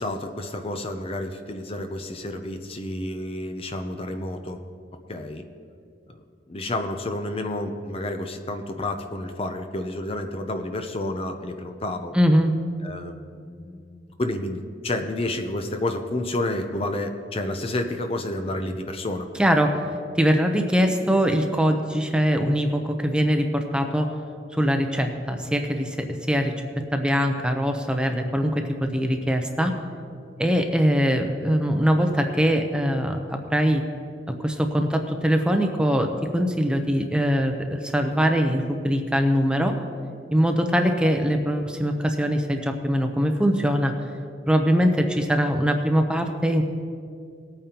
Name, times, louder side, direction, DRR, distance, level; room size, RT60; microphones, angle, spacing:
voice 1, 0.0-4.6 5.1-5.4 6.5-12.1 12.8-19.3, left 1 dB, 30° left, 6 dB, 0.6 m, -30 dB
voice 2, 12.1-12.5 19.4-19.8 20.2-24.1 24.5-26.5 26.9-29.7 30.4-33.8 34.4-39.7 40.3-43.9 44.5-46.6, equal, 5° right, 4 dB, 0.7 m, -22 dB
20.0 x 8.8 x 2.9 m, 2.4 s
head